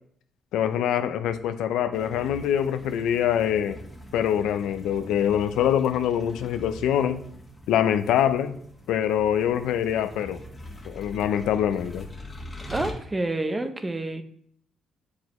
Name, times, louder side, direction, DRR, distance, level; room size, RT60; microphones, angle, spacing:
voice 1, 0.5-3.8 4.1-7.2 7.7-8.6 8.9-10.4 10.8-12.1, left 9 dB, 85° left, 10 dB, 0.4 m, -24 dB
sound 1, 1.9-12.9, equal, 15° left, 1.3 m, -43 dB
voice 2, 12.7-14.2, right 2 dB, 20° right, 9 dB, 0.6 m, -28 dB
7.3 x 4.9 x 3.0 m, 0.64 s
cardioid pair, 90°, 0 cm